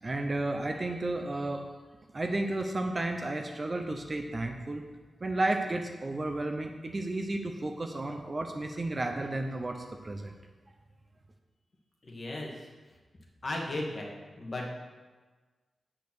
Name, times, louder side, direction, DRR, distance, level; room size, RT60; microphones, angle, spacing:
voice 1, 0.0-1.6 2.1-4.8 5.2-10.3, right 2 dB, 30° right, 4 dB, 0.6 m, -32 dB
voice 2, 12.0-12.5 13.4-14.1 14.4-14.7, left 1 dB, 35° left, -1 dB, 1.6 m, -35 dB
8.7 x 5.2 x 6.0 m, 1.3 s
wide cardioid pair, 145°, 0 cm